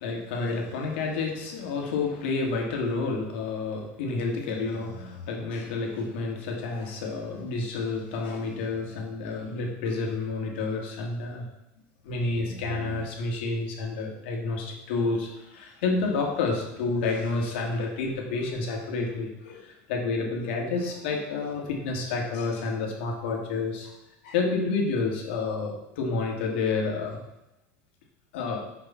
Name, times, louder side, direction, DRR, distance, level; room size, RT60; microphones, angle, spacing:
voice 1, 0.0-11.5 12.0-23.9 24.2-27.2 28.3-28.6, left 3 dB, 85° left, 0 dB, 2.1 m, -29 dB
6.9 x 5.5 x 5.7 m, 0.92 s
supercardioid pair, 165°, 6 cm